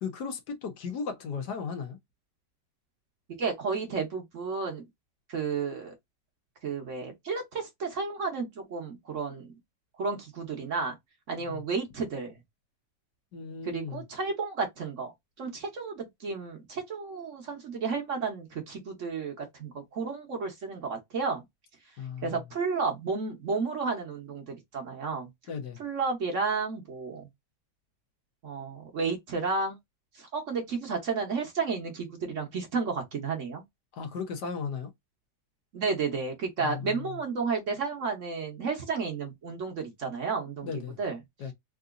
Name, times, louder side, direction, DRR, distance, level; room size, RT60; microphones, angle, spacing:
voice 1, 0.0-2.0 11.5-11.6 13.3-14.0 22.0-22.4 25.5-25.8 34.0-34.9 36.6-37.0 40.6-41.0 41.4-41.5, left 6 dB, 75° left, 1.5 m, -36 dB
voice 2, 3.4-4.8 5.3-5.9 6.6-9.6 10.0-11.0 11.3-12.4 13.6-15.1 15.4-21.4 22.2-25.3 25.8-27.3 28.4-29.8 30.1-33.6 35.7-41.2, right 4 dB, 55° right, 1.1 m, -32 dB
3.8 x 2.6 x 2.4 m
omnidirectional pair, 1.8 m